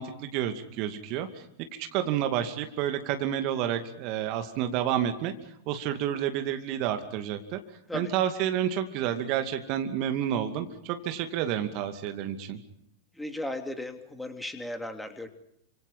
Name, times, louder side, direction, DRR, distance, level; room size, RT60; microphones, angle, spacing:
voice 1, 0.0-5.3 5.7-7.6 7.9-12.6, right 10 dB, 40° right, 7 dB, 2.5 m, -30 dB
voice 2, 13.2-15.3, left 1 dB, 5° left, 6 dB, 2.9 m, -36 dB
30.0 x 26.0 x 5.6 m, 0.73 s
figure-of-eight pair, 90°, 0 cm